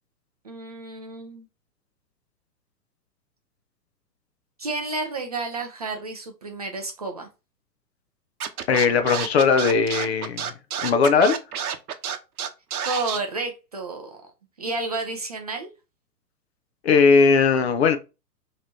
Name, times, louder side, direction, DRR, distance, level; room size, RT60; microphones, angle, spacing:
voice 1, 0.4-1.5 4.6-7.3 12.8-14.1 14.6-15.7, right 3 dB, 25° right, 0.4 m, -31 dB
Scratching (performance technique), 8.4-13.2, right 8 dB, 65° right, 0.8 m, -29 dB
voice 2, 8.7-10.4 10.8-11.4 16.8-18.0, left 5 dB, 40° left, 0.6 m, -18 dB
5.8 x 3.1 x 2.7 m
figure-of-eight pair, 120°, 49 cm